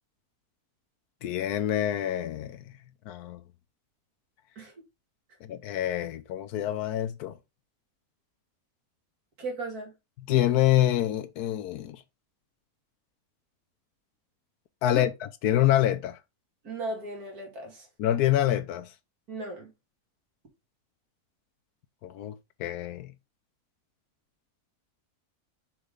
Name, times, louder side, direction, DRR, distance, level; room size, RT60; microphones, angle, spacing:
voice 1, 1.2-2.6 3.1-3.4 5.5-7.4 10.3-12.0 14.8-15.1 15.4-16.2 18.0-18.9 22.0-23.1, left 12 dB, 90° left, 1.2 m, -26 dB
voice 2, 9.4-9.9 14.9-15.1 16.6-17.9 19.3-19.7, right 2 dB, 75° right, 2.7 m, -36 dB
5.9 x 3.8 x 4.9 m
omnidirectional pair, 1.6 m